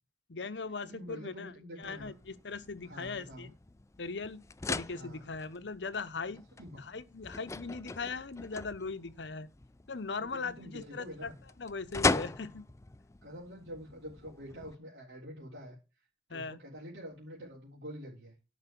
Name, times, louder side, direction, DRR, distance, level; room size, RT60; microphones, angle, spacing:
voice 1, 0.3-1.5 1.8-3.5 4.0-6.5 6.8-9.5 9.9-11.3 11.6-12.7 16.3-16.6, left 4 dB, 85° left, 0.9 m, -39 dB
voice 2, 0.8-2.2 2.8-3.5 4.9-5.3 6.6-6.8 10.2-11.4 13.2-15.8 16.3-18.3, equal, 90° right, 3.6 m, -46 dB
sound 1, 1.8-14.8, left 3 dB, 15° left, 0.4 m, -39 dB
11.0 x 5.5 x 6.8 m
head